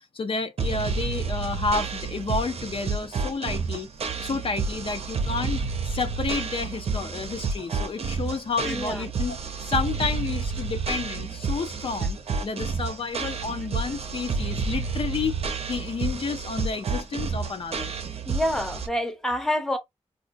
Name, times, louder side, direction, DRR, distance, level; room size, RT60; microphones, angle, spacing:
voice 1, 0.0-3.9 4.2-12.2 12.4-15.4 15.7-17.9, left 4 dB, 50° left, 0.4 m, -30 dB
sound 1, 0.6-18.9, right 4 dB, 60° right, 0.6 m, -30 dB
voice 2, 8.6-9.1 18.2-19.8, left 1 dB, 5° left, 0.7 m, -27 dB
4.2 x 2.3 x 2.5 m
wide cardioid pair, 105°, 11 cm